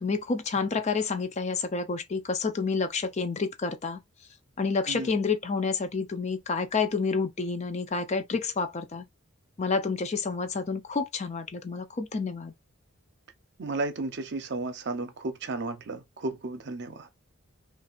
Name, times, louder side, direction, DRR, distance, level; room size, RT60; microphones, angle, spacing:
voice 1, 0.0-4.0 4.6-9.0 9.6-12.5, left 4 dB, 30° left, 0.4 m, -29 dB
voice 2, 13.6-17.1, right 2 dB, 55° right, 0.7 m, -33 dB
3.3 x 2.5 x 4.0 m
head